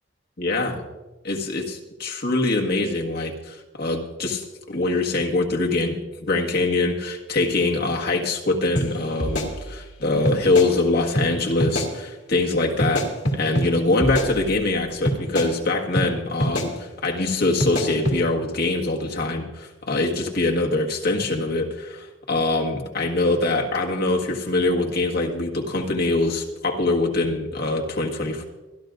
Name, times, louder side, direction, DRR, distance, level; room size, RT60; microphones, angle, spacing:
voice 1, 0.4-0.8 1.2-6.0 6.2-13.1 13.3-28.5, left 2 dB, 55° left, 0 dB, 1.6 m, -23 dB
sound 1, 8.8-8.9 9.2-10.0 10.3-10.7 11.2-11.3 11.6-11.9 12.8-13.7 14.0-14.7 15.1-15.5 16.0-16.1 16.4-16.7 17.6-18.2, equal, 75° left, 2.3 m, -25 dB
26.0 x 11.5 x 2.6 m, 1.1 s
head